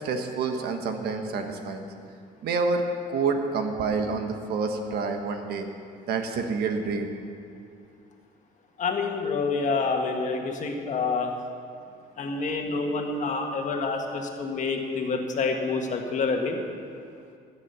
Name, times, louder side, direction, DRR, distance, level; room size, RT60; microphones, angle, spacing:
voice 1, 0.0-1.9 2.4-5.7 6.1-7.1, right 4 dB, 70° right, 5 dB, 1.4 m, -28 dB
voice 2, 8.8-11.3 12.2-16.6, left 4 dB, 45° left, 3 dB, 1.6 m, -27 dB
15.0 x 7.5 x 6.9 m, 2.4 s
cardioid pair, 110°, 17 cm